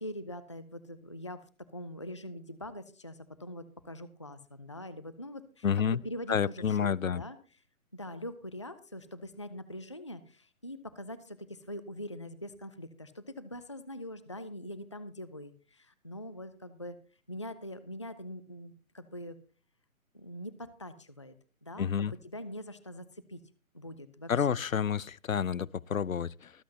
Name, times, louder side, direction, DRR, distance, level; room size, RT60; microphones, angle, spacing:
voice 1, 0.0-1.4 1.7-7.4 7.9-17.0 17.3-19.4 20.1-21.3 21.6-23.4 23.7-24.6, left 1 dB, 20° left, 0.5 m, -43 dB
voice 2, 5.6-6.0 6.3-7.2 21.8-22.1 24.3-26.5, left 7 dB, 70° left, 0.6 m, -29 dB
24.0 x 8.1 x 2.8 m
figure-of-eight pair, 140°, 42 cm